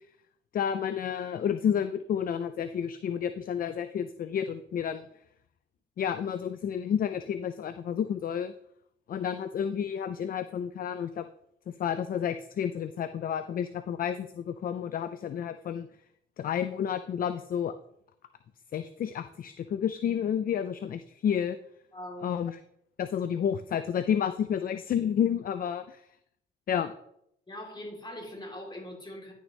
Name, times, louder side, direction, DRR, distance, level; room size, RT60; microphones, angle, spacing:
voice 1, 0.5-5.0 6.0-8.5 9.1-11.3 11.8-15.9 16.4-17.7 18.7-21.6 22.2-22.6 23.0-26.0 26.7-26.9, left 8 dB, 45° left, 11 dB, 0.4 m, -30 dB
voice 2, 21.9-22.3 27.5-29.3, left 1 dB, 20° left, -1 dB, 3.1 m, -41 dB
11.0 x 6.2 x 3.2 m, 0.75 s
cardioid pair, 90°, 20 cm